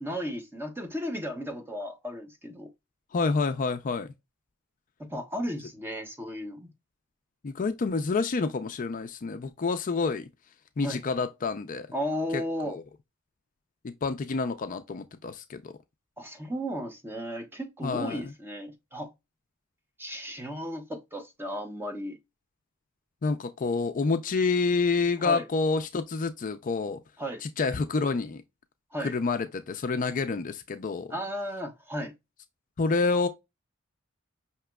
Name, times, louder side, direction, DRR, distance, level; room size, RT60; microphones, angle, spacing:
voice 1, 0.0-2.7 5.1-6.7 10.8-11.0 11.9-12.8 16.2-19.1 20.0-22.2 25.2-25.4 27.2-27.4 28.9-29.1 31.1-32.1, equal, 10° right, 0.8 m, -34 dB
voice 2, 3.1-4.1 7.4-10.3 10.8-11.9 12.3-12.8 13.8-15.7 17.8-18.3 23.2-27.0 27.4-28.4 29.0-31.1 32.8-33.3, left 4 dB, 40° left, 0.4 m, -28 dB
5.8 x 2.9 x 2.2 m
head